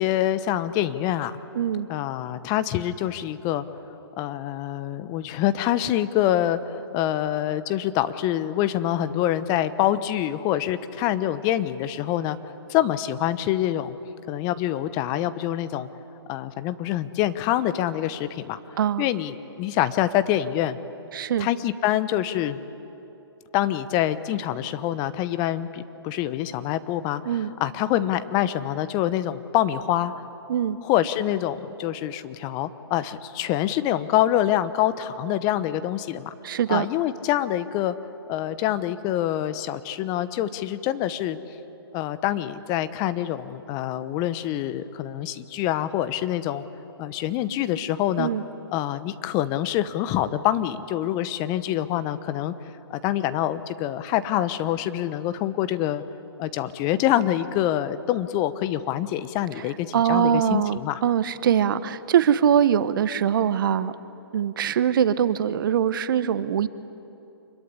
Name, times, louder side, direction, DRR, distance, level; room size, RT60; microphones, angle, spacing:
voice 1, 0.0-1.4 1.9-3.6 4.2-12.4 12.7-14.0 14.3-15.9 16.3-18.6 19.0-20.8 21.4-22.6 23.5-30.1 30.8-36.3 36.7-37.9 38.3-41.4 41.9-46.6 47.0-48.3 48.7-52.5 52.9-56.0 56.4-61.0, left 12 dB, 30° left, 13 dB, 1.0 m, -25 dB
voice 2, 1.5-1.9 18.8-19.1 21.1-21.5 27.2-27.5 30.5-30.8 36.4-36.9 48.2-48.4 59.9-63.9 64.3-66.7, right 9 dB, 55° right, 14 dB, 1.0 m, -22 dB
26.0 x 22.5 x 9.8 m, 2.9 s
hypercardioid pair, 135°, 13 cm